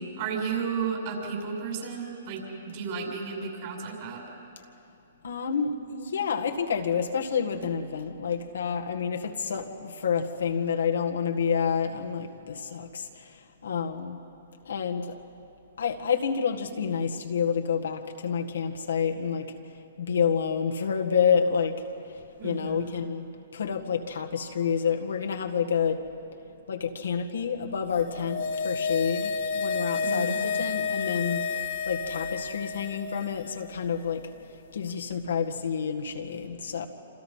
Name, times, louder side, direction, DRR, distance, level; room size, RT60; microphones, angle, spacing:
voice 1, 0.2-4.2 22.4-22.8 30.0-30.4, right 5 dB, 45° right, 0 dB, 7.2 m, -33 dB
voice 2, 5.2-13.3 13.6-14.2 14.7-15.2 15.8-19.5 20.0-21.8 22.4-23.3 23.5-26.0 26.7-34.3 34.7-36.9, left 6 dB, 80° left, 3 dB, 1.9 m, -28 dB
sound 1, 28.0-33.5 33.7-33.8, left 5 dB, 60° left, 2.2 m, -30 dB
27.5 x 27.0 x 5.7 m, 2.7 s
hypercardioid pair, 135°, 0 cm